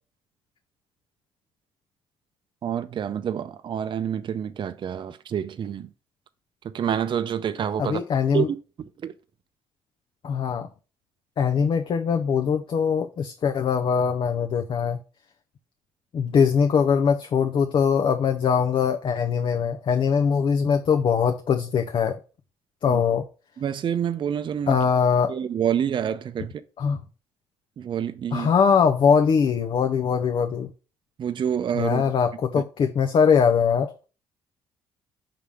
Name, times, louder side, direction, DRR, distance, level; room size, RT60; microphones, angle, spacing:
voice 1, 2.6-5.9 6.6-8.0 8.3-9.1 22.9-23.0 23.6-24.8 25.3-26.6 27.8-28.5 31.2-32.0 32.6-32.7, right 8 dB, 45° right, 0.5 m, -28 dB
voice 2, 7.8-8.5 10.2-10.7 11.4-15.0 16.1-22.2 22.8-23.3 24.7-25.3 26.8-27.0 28.3-30.7 31.7-33.9, left 6 dB, 50° left, 0.6 m, -22 dB
5.7 x 3.4 x 4.9 m
supercardioid pair, 60°, 11 cm